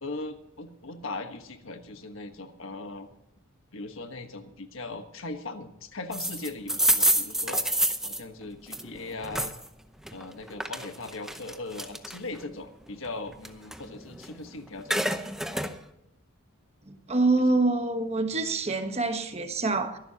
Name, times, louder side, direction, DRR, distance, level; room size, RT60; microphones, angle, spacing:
voice 1, 0.0-3.1 3.7-7.6 8.0-9.6 10.1-15.2, left 2 dB, 65° left, 1.4 m, -39 dB
sound 1, 6.1-9.7 10.1-12.4 12.9-14.4 14.7-15.7, right 1 dB, ahead, 0.8 m, -28 dB
voice 2, 16.9-20.0, right 3 dB, 30° right, 1.2 m, -26 dB
23.5 x 12.0 x 2.9 m
head